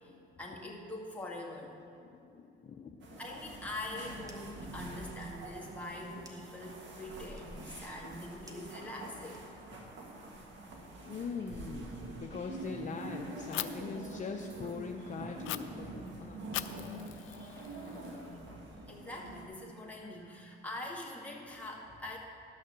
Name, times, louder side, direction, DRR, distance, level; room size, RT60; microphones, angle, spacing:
voice 1, 0.4-1.8 3.2-9.5 17.2-17.8 18.1-18.2 18.9-22.2, left 1 dB, 5° left, -3 dB, 1.9 m, -44 dB
voice 2, 2.0-3.2 11.0-16.7, left 5 dB, 40° left, 2 dB, 0.6 m, -42 dB
sound 1, 3.0-19.5, right 1 dB, 65° right, 1.8 m, -46 dB
sound 2, 4.2-4.6 5.0-9.9, right 1 dB, 15° right, 1.3 m, -61 dB
Fire, 13.5-13.7 15.4-15.6 16.5-18.5, left 15 dB, 80° left, 0.4 m, -40 dB
11.5 x 6.4 x 6.6 m, 2.7 s
cardioid pair, 90°, 20 cm